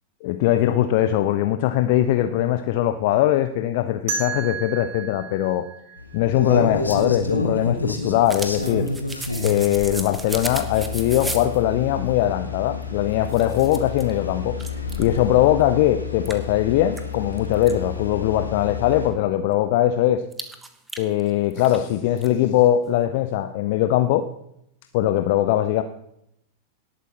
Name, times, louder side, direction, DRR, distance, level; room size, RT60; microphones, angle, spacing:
voice 1, 0.2-5.7 6.1-8.9 9.4-14.6 15.0-20.2 21.0-24.3 24.9-25.8, left 12 dB, 50° left, 10 dB, 0.6 m, -21 dB
sound 1, 4.1-6.9, right 5 dB, 55° right, 2.7 m, -33 dB
sound 2, 6.0-19.1, left 3 dB, 80° left, 1.6 m, -30 dB
sound 3, 6.7-11.6 12.8-12.9 13.3-14.1 14.6-15.2 15.6-15.7 16.3-17.7 20.3-21.8 22.1-22.3, right 2 dB, 10° right, 1.3 m, -36 dB
18.5 x 8.3 x 4.4 m, 0.78 s
figure-of-eight pair, 90°, 0 cm